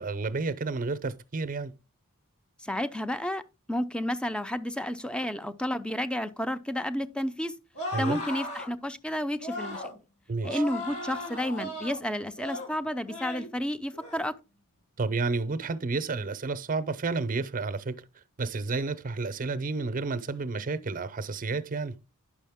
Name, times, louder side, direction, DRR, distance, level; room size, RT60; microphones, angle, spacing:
voice 1, 0.0-1.7 7.9-8.2 10.3-10.6 15.0-18.0 18.4-21.9, right 3 dB, 40° right, 0.7 m, -31 dB
voice 2, 2.6-3.4 3.7-7.5 7.9-9.8 10.4-14.3, left 1 dB, 5° left, 0.5 m, -31 dB
sound 1, 7.7-8.7 9.4-9.9 10.4-12.0 12.4-12.7 13.1-13.5 13.9-14.2, left 1 dB, 85° left, 4.4 m, -36 dB
10.0 x 6.3 x 3.6 m
head